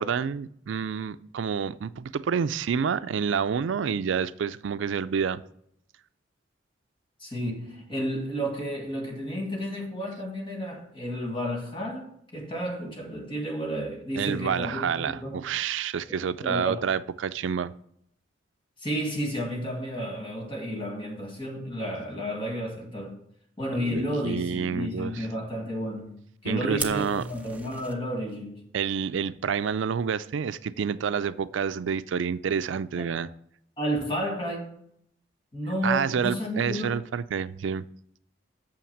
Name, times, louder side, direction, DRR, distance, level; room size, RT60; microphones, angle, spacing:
voice 1, 0.0-5.4 14.2-17.7 23.7-25.1 26.4-27.2 28.7-33.3 35.8-37.8, right 6 dB, 80° right, 0.4 m, -28 dB
voice 2, 7.2-15.4 16.1-16.8 18.8-23.2 23.6-28.7 33.0-33.2 33.8-34.7 35.5-36.9, equal, 25° left, 1.9 m, -32 dB
Fire, 26.8-27.9, right 4 dB, 10° right, 0.6 m, -36 dB
7.1 x 5.8 x 7.2 m
head